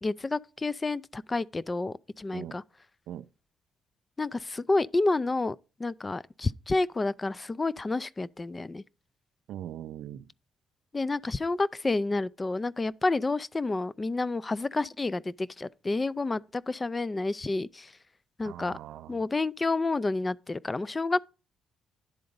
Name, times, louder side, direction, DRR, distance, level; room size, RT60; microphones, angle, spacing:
voice 1, 0.0-2.6 4.2-8.8 10.9-18.0 18.4-18.8 19.1-21.2, left 3 dB, 25° left, 0.3 m, -29 dB
voice 2, 9.5-10.3 18.4-19.2, right 11 dB, 80° right, 0.4 m, -41 dB
11.0 x 3.8 x 5.2 m
cardioid pair, 90°, 0 cm